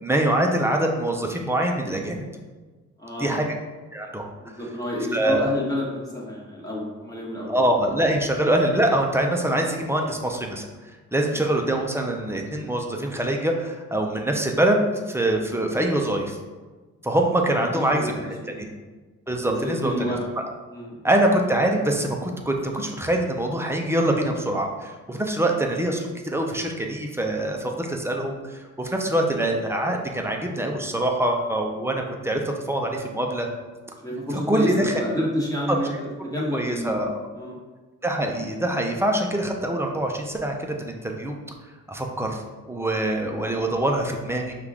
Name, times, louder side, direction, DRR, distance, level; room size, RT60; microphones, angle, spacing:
voice 1, 0.0-2.2 3.2-3.5 3.9-4.3 5.1-5.5 7.5-10.6 11.1-16.4 17.0-18.1 18.5-18.7 19.3-20.2 21.0-33.5 34.5-34.9 36.5-37.1 38.0-41.4 41.9-44.5, right 1 dB, 10° right, 2 dB, 0.5 m, -24 dB
voice 2, 3.0-3.4 4.4-7.7 11.1-11.3 17.4-18.8 19.4-20.2 20.7-21.1 34.0-36.9 37.3-37.6, equal, 10° left, -5 dB, 1.3 m, -30 dB
5.5 x 2.4 x 3.4 m, 1.3 s
cardioid pair, 90°, 30 cm